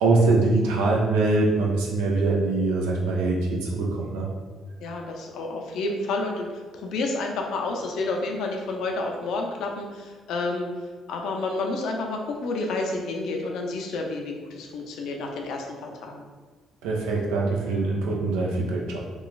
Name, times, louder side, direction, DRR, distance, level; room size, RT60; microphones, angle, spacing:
voice 1, 0.0-4.3 16.8-19.0, right 3 dB, 80° right, -2 dB, 0.5 m, -23 dB
voice 2, 4.8-10.7 11.1-16.2, left 2 dB, 70° left, 2 dB, 0.4 m, -30 dB
3.0 x 2.2 x 2.4 m, 1.4 s
hypercardioid pair, 55°, 0 cm